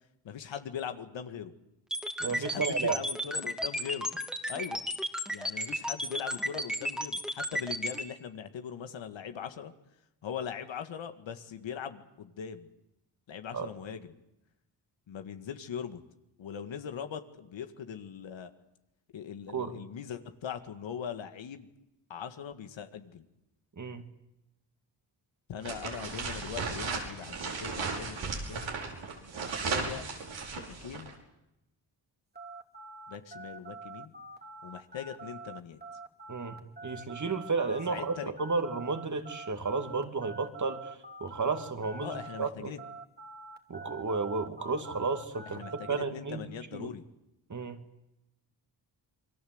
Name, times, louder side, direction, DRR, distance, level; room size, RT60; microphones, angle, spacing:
voice 1, 0.2-1.5 2.3-4.1 4.5-4.8 5.3-9.7 10.2-12.7 13.3-14.1 15.1-16.0 16.4-18.5 19.1-21.7 22.1-23.2 25.5-28.7 29.4-30.0 30.5-31.1 33.1-34.1 34.6-35.8 37.9-38.3 42.0-42.8 45.5-47.0, left 8 dB, 80° left, 8 dB, 2.0 m, -40 dB
sound 1, 1.9-8.0, equal, ahead, 2.6 m, -33 dB
voice 2, 2.2-3.0 13.5-13.7 19.5-19.7 23.8-24.0 36.3-42.7 43.7-45.6 45.9-46.5 46.7-46.9 47.5-47.8, right 4 dB, 40° right, 6 dB, 2.8 m, -33 dB
sound 2, 25.6-31.1, right 4 dB, 85° right, 5.8 m, -35 dB
sound 3, 32.3-42.5 42.8-46.0, right 3 dB, 20° right, 2.6 m, -46 dB
28.0 x 22.0 x 8.0 m, 0.88 s
cardioid pair, 70°, 44 cm